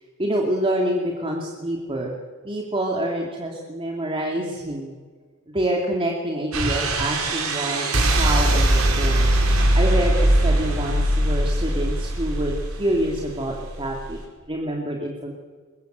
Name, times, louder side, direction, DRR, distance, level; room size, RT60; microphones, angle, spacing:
voice 1, 0.2-2.2 2.4-4.9 5.5-9.3 9.7-12.5 12.8-14.2 14.5-15.3, right 1 dB, 25° right, -1 dB, 2.7 m, -26 dB
sound 1, 6.5-14.2, right 1 dB, 85° right, 5.0 m, -21 dB
22.5 x 21.5 x 8.1 m, 1.5 s
head